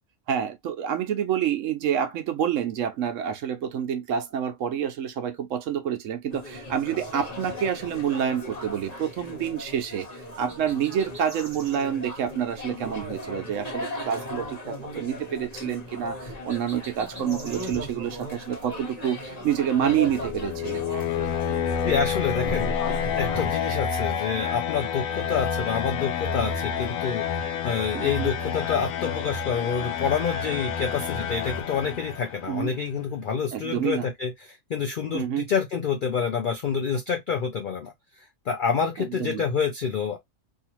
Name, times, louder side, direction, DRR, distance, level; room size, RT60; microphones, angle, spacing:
voice 1, 0.3-10.1 10.4-20.8 27.9-28.3 32.5-32.7 33.5-34.1 35.1-35.5 39.0-39.4, right 9 dB, 70° right, 1.0 m, -28 dB
sound 1, 6.3-23.5, left 1 dB, 35° left, 1.0 m, -37 dB
sound 2, 10.5-11.9 16.5-17.8, right 2 dB, 35° right, 0.8 m, -45 dB
sound 3, 19.7-32.5, left 8 dB, 80° left, 1.0 m, -29 dB
voice 2, 21.9-22.7 23.1-27.2 27.6-34.3 34.7-37.9 38.5-40.2, left 6 dB, 60° left, 0.5 m, -27 dB
2.8 x 2.5 x 2.9 m
omnidirectional pair, 1.4 m